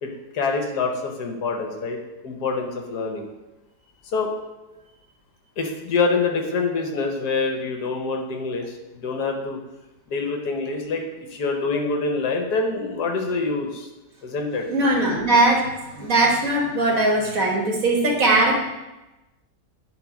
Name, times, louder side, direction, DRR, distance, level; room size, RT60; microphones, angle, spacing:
voice 1, 0.0-2.0 2.2-3.2 4.1-4.3 5.6-9.6 10.1-11.0 11.3-13.9 14.2-14.6, left 4 dB, 70° left, 3 dB, 1.5 m, -25 dB
voice 2, 14.7-18.7, right 2 dB, 50° right, -2 dB, 1.9 m, -20 dB
9.4 x 3.5 x 5.0 m, 1.0 s
omnidirectional pair, 1.9 m